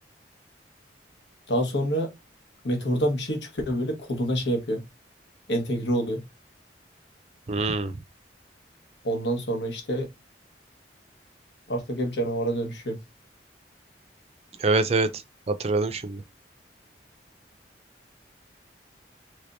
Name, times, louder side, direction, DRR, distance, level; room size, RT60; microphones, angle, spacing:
voice 1, 1.5-2.1 2.6-4.8 5.5-6.2 9.0-10.1 11.7-13.0, right 1 dB, 85° left, 1.3 m, -27 dB
voice 2, 7.5-7.9 14.6-15.1 15.5-16.2, right 3 dB, 35° right, 0.4 m, -24 dB
3.4 x 3.3 x 2.6 m
head